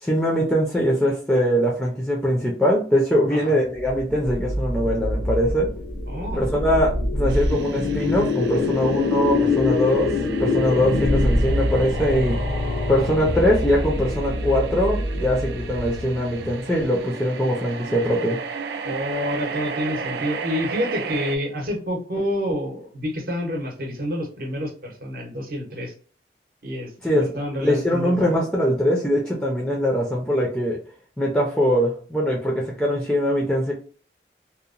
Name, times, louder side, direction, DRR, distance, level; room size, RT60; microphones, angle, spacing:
voice 1, 0.0-5.7 6.3-10.1 10.4-12.4 12.9-18.4 27.0-27.3 27.6-30.8 31.2-33.7, equal, 5° left, -1 dB, 0.4 m, -22 dB
sound 1, 3.8-17.0, left 2 dB, 80° left, 0.6 m, -25 dB
voice 2, 6.1-6.5 18.8-25.9 26.6-28.3, equal, 55° right, 1 dB, 0.8 m, -28 dB
sound 2, 7.3-21.4, right 5 dB, 70° right, 0.3 m, -35 dB
2.9 x 2.0 x 2.5 m, 0.42 s
head